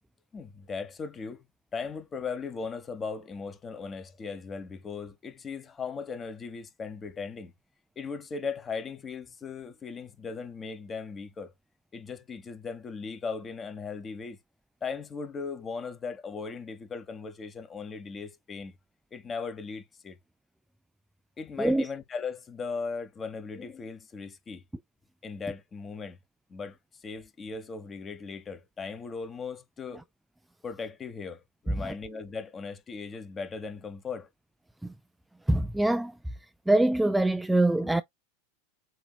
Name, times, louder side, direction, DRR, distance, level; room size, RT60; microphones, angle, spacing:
voice 1, 0.3-1.5 1.7-7.5 8.0-11.5 11.9-14.4 14.8-18.7 19.1-20.2 21.4-24.6 25.2-26.2 26.5-30.0 30.6-34.3 37.8-37.9, left 5 dB, 25° left, 1.1 m, -38 dB
voice 2, 35.5-36.1 36.7-38.0, right 1 dB, 5° right, 0.3 m, -24 dB
7.8 x 2.9 x 2.3 m
hypercardioid pair, 110°, 0 cm